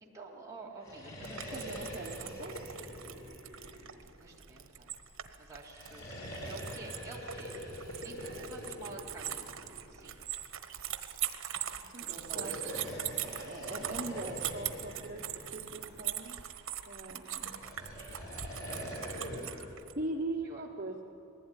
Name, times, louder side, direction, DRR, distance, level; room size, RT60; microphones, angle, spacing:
voice 1, 0.0-1.8 4.2-4.9 5.4-6.1 6.5-9.5 9.9-10.2 12.0-12.6 20.4-20.6, right 3 dB, 15° right, -3 dB, 2.5 m, -49 dB
sound 1, 0.7-4.3 5.6-10.0 12.1-16.1 17.4-19.7, equal, 85° left, 4.9 m, -44 dB
sound 2, 1.2-19.9, right 11 dB, 70° right, 1.1 m, -41 dB
voice 2, 1.4-2.7 11.9-12.5 13.4-15.2 15.5-16.4 16.9-17.5 20.0-21.0, right 2 dB, 40° right, 0 dB, 1.1 m, -40 dB
20.0 x 15.5 x 9.8 m, 2.8 s
head